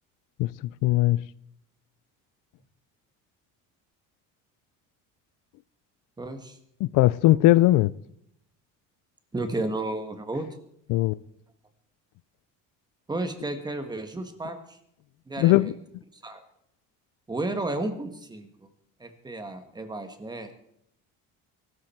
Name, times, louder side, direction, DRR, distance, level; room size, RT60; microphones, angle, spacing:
voice 1, 0.8-1.2 6.8-7.9 10.9-11.2 15.4-15.7, left 17 dB, 70° left, 0.5 m, -19 dB
voice 2, 6.2-6.6 9.3-10.5 13.1-14.8 15.3-15.8 16.2-16.4 17.3-18.5 19.0-20.5, right 2 dB, 10° right, 1.7 m, -32 dB
23.0 x 13.0 x 4.5 m
cardioid pair, 145°, 33 cm